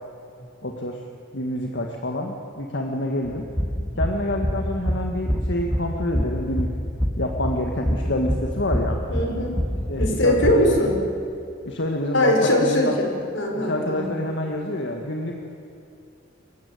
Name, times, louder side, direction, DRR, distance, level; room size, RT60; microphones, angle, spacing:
voice 1, 0.6-1.0 1.3-3.5 4.0-6.7 7.2-9.0 9.9-10.9 11.7-12.9 13.5-15.3, left 1 dB, 65° left, 2 dB, 1.9 m, -27 dB
sound 1, 3.2-10.5, equal, ahead, 1.6 m, -26 dB
voice 2, 9.1-9.6 10.0-11.0 12.1-14.1, left 1 dB, 85° left, 1 dB, 5.2 m, -21 dB
27.0 x 15.5 x 9.4 m, 2.6 s
head